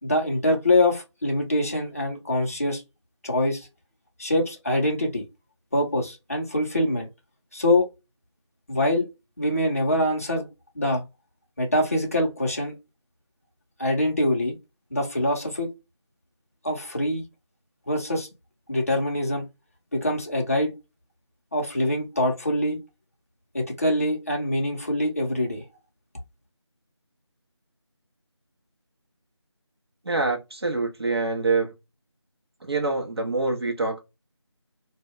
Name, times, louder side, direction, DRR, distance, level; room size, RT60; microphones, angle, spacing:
voice 1, 0.0-2.8 3.2-3.7 4.2-5.2 5.7-7.1 7.5-7.9 8.7-9.1 9.4-10.5 10.8-11.0 11.6-12.7 13.8-14.5 14.9-15.7 16.6-17.2 17.9-18.3 18.7-19.5 19.9-20.7 21.5-22.8 23.5-25.6, left 1 dB, 30° left, 0.6 m, -24 dB
voice 2, 30.1-31.7 32.6-34.0, right 3 dB, 60° right, 0.7 m, -25 dB
2.2 x 2.1 x 3.5 m
figure-of-eight pair, 170°, 15 cm